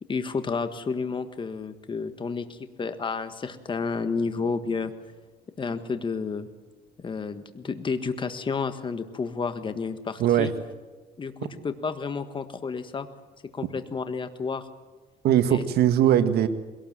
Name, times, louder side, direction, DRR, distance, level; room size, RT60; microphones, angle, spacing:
voice 1, 0.1-4.9 5.6-6.5 7.0-10.5 11.2-11.3 11.6-13.1 13.5-14.7 15.5-15.6, left 5 dB, 30° left, 10 dB, 1.6 m, -31 dB
voice 2, 10.2-10.5 15.2-16.5, right 10 dB, 70° right, 9 dB, 1.6 m, -20 dB
21.5 x 18.0 x 7.5 m, 1.3 s
cardioid pair, 110°, 17 cm